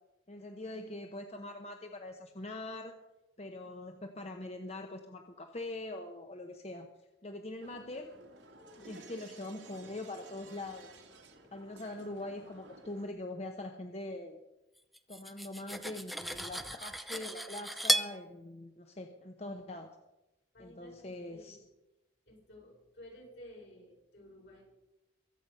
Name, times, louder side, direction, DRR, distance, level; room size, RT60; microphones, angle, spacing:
voice 1, 0.3-3.0 3.4-6.9 7.2-8.1 8.7-11.0 11.5-14.4 15.1-19.9 20.6-21.6, left 2 dB, 35° left, 5 dB, 0.9 m, -43 dB
sound 1, 7.6-13.1, right 2 dB, 85° right, 2.0 m, -54 dB
voice 2, 8.8-9.1 15.7-16.4 20.5-21.6 22.3-24.7, left 1 dB, 70° left, -2 dB, 6.4 m, -55 dB
Cutlery silverware, 14.9-18.1, right 1 dB, ahead, 0.6 m, -34 dB
23.0 x 8.2 x 5.5 m, 0.97 s
head